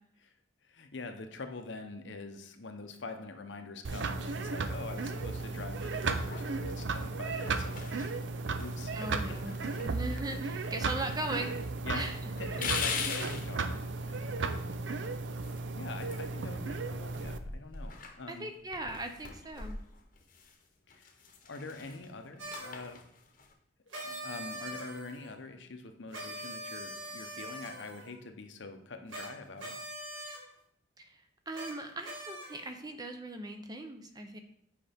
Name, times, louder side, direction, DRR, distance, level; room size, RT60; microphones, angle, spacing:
voice 1, 0.7-8.0 8.6-8.9 9.3-9.4 9.8-10.4 11.8-12.1 12.4-14.4 15.8-18.5 20.9-21.1 21.5-23.0 24.0-29.7, left 3 dB, 70° left, 6 dB, 0.7 m, -44 dB
sound 1, 3.8-17.4, right 3 dB, 70° right, 0.5 m, -35 dB
sound 2, 5.2-5.9 6.3-6.8 7.3-8.2 8.6-8.7 9.0-10.3 10.6-11.5 11.7-11.8 12.4-13.5 15.3-16.7 17.0-20.6 20.9-23.5, left 5 dB, 45° left, 0.9 m, -41 dB
voice 2, 8.9-12.2 12.6-12.7 18.3-19.8 31.0-34.4, right 2 dB, 20° right, 5 dB, 0.5 m, -39 dB
sound 3, 22.4-22.8 23.9-25.3 26.1-28.2 29.1-29.3 29.6-30.4 31.5-31.7 32.0-32.7, right 1 dB, 85° right, 1.7 m, -42 dB
7.9 x 5.0 x 3.5 m, 0.74 s
head